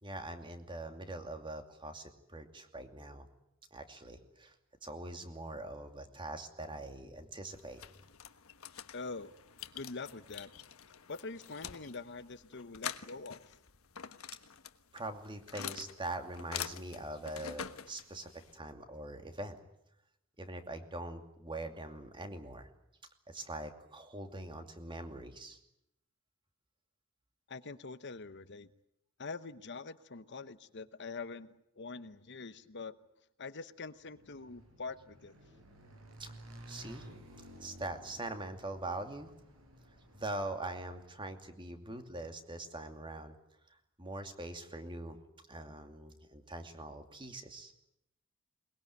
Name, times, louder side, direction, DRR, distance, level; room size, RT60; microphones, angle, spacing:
voice 1, 0.0-3.3 3.7-4.6 4.8-7.8 14.9-19.6 20.4-22.7 23.3-25.6 36.2-36.3 36.7-37.1 37.6-39.3 40.1-43.4 44.0-45.2 45.5-47.7, right 2 dB, 25° right, 6 dB, 2.6 m, -43 dB
sound 1, 7.5-18.6, left 8 dB, 80° left, 1.3 m, -46 dB
voice 2, 8.9-9.3 9.7-10.5 11.1-13.5 27.5-28.7 29.2-31.5 31.8-33.0 33.4-35.3, left 4 dB, 55° left, 13 dB, 0.9 m, -44 dB
Motorcycle / Engine, 34.0-41.3, right 1 dB, 75° right, 6.7 m, -54 dB
22.0 x 21.5 x 9.4 m, 0.80 s
head